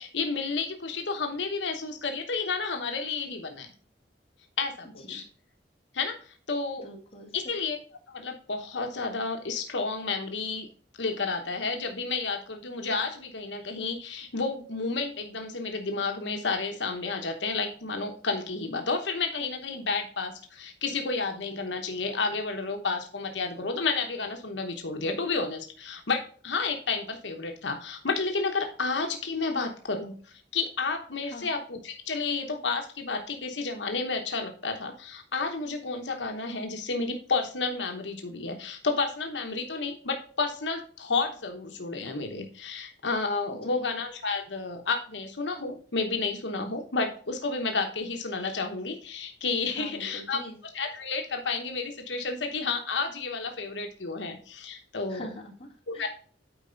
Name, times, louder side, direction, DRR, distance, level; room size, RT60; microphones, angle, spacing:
voice 1, 0.0-3.7 4.6-5.3 5.9-6.8 7.3-7.8 8.1-10.7 11.0-50.4 50.7-55.3 55.9-56.1, left 4 dB, 85° left, 4 dB, 1.0 m, -31 dB
voice 2, 6.8-7.3 31.3-31.5 43.7-43.9 49.7-50.6 55.1-56.1, left 1 dB, 30° left, -1 dB, 1.9 m, -44 dB
8.9 x 4.8 x 3.8 m, 0.44 s
head